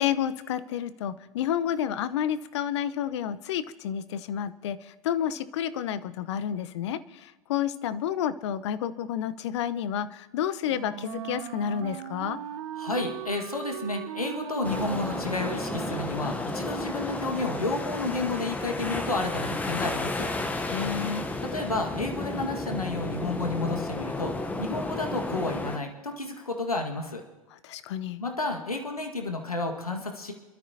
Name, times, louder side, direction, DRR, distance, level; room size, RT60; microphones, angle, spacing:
voice 1, 0.0-4.8 5.0-7.0 7.5-12.4 20.7-21.2 27.6-28.2, left 9 dB, 50° left, 14 dB, 0.8 m, -30 dB
Wind instrument woodwind instrument, 10.6-16.6, right 10 dB, 50° right, 0.9 m, -39 dB
voice 2, 12.8-20.3 21.4-24.3 24.6-27.2 28.2-30.3, left 2 dB, 85° left, 3 dB, 1.8 m, -31 dB
sound 1, 14.6-25.8, left 2 dB, 10° left, 0.9 m, -32 dB
26.5 x 13.0 x 2.8 m, 1.2 s
figure-of-eight pair, 100°, 18 cm